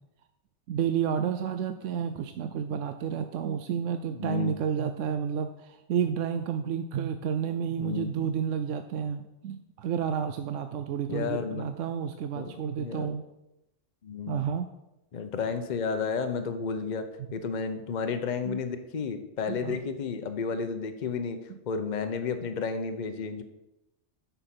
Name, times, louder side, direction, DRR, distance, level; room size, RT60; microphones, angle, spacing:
voice 1, 0.7-13.2 14.3-14.7 18.4-18.6 19.5-19.8, right 8 dB, 75° right, 8 dB, 0.9 m, -31 dB
voice 2, 4.1-4.5 7.8-8.1 11.1-11.7 12.3-13.1 14.0-14.5 15.1-17.0 17.3-21.4 21.7-23.4, left 5 dB, 40° left, 8 dB, 0.8 m, -32 dB
8.1 x 5.9 x 5.9 m, 0.92 s
omnidirectional pair, 1.3 m